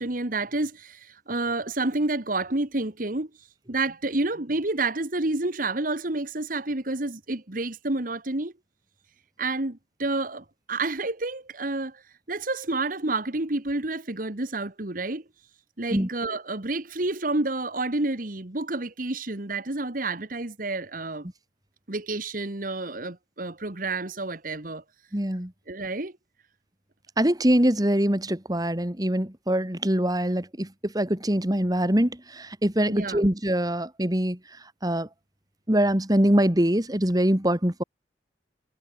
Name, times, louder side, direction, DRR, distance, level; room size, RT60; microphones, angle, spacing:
voice 1, 0.0-8.5 9.4-12.0 12.3-15.2 15.8-21.3 21.9-24.8 25.7-26.1 32.9-33.2, right 2 dB, 50° right, 1.7 m, -29 dB
voice 2, 25.1-25.5 27.2-34.4 34.8-35.1 35.7-37.8, right 1 dB, 20° right, 2.3 m, -23 dB
head